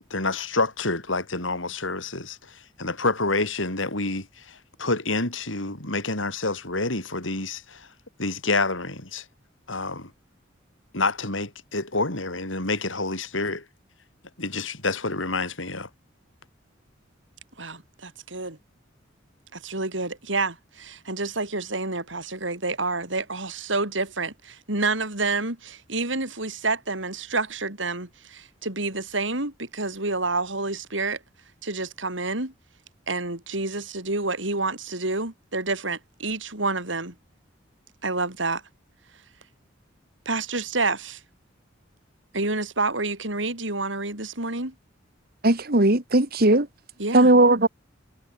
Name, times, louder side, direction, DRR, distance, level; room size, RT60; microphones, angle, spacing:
voice 1, 0.0-7.9 8.2-9.2 9.7-10.1 10.9-13.6 14.4-15.9, left 3 dB, 85° left, 6.4 m, -28 dB
voice 2, 17.6-18.6 19.5-31.2 31.6-32.5 33.1-37.1 38.0-38.6 40.3-41.2 42.3-44.7 47.0-47.3, right 3 dB, 75° right, 5.7 m, -28 dB
voice 3, 45.4-46.7 47.1-47.7, right 2 dB, 50° right, 2.4 m, -18 dB
head